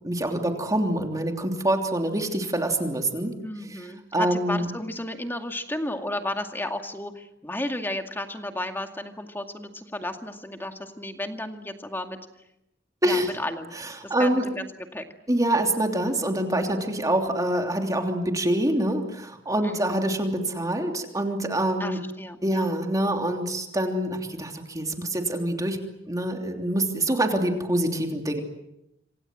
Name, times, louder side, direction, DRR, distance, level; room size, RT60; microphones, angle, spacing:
voice 1, 0.0-3.3 3.7-3.8 4.1-4.7 13.0-13.3 13.8-14.5 15.3-22.0 22.4-25.8 26.1-28.4, right 1 dB, 20° right, 3 dB, 3.1 m, -25 dB
voice 2, 3.4-12.2 13.0-13.8 14.0-15.0 19.6-20.0 21.8-22.7, left 1 dB, 10° left, 5 dB, 2.2 m, -33 dB
26.5 x 26.5 x 7.7 m, 0.84 s
head